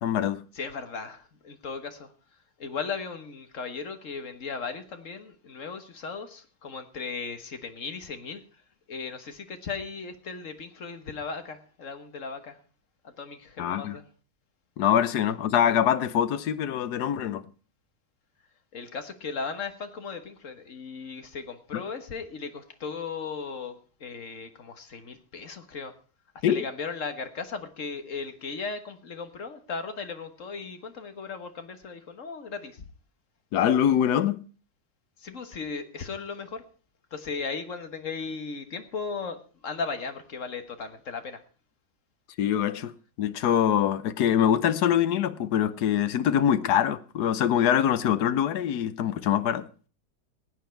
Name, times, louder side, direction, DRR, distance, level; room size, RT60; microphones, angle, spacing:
voice 1, 0.0-0.4 13.6-14.0 14.8-17.5 21.7-21.8 26.4-26.7 33.5-34.4 42.4-42.9 43.2-49.7, left 9 dB, 65° left, 1.3 m, -24 dB
voice 2, 0.5-2.1 2.6-8.4 8.9-12.6 13.0-14.0 18.7-25.9 26.5-32.9 35.2-36.6 37.1-41.4, left 5 dB, 45° left, 1.6 m, -37 dB
17.0 x 9.2 x 4.5 m
omnidirectional pair, 1.9 m